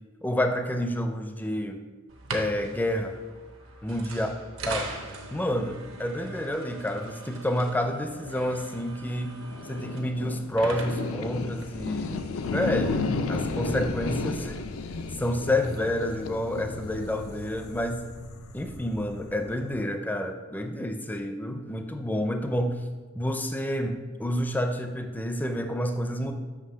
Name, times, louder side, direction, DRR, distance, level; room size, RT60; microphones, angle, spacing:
voice 1, 0.2-1.8 2.3-3.1 3.8-4.3 4.7-4.9 5.3-9.4 9.7-13.0 13.3-14.6 15.2-18.1 18.5-22.8 23.2-26.3, left 1 dB, 10° left, 6 dB, 0.4 m, -29 dB
sound 1, 2.1-12.4, right 3 dB, 75° right, 1.0 m, -41 dB
sound 2, 9.4-19.8, left 3 dB, 85° left, 0.5 m, -33 dB
7.4 x 3.2 x 5.6 m, 1.4 s
head